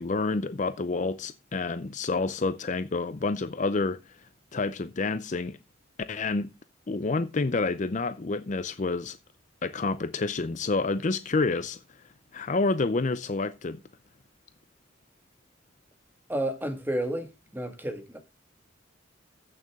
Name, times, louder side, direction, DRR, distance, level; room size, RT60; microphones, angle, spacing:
voice 1, 0.0-4.0 4.5-5.6 6.1-6.5 6.9-9.2 9.6-11.8 12.3-13.8, left 3 dB, 40° left, 0.5 m, -28 dB
voice 2, 16.3-18.2, right 1 dB, 10° right, 1.9 m, -31 dB
15.0 x 6.6 x 3.6 m
head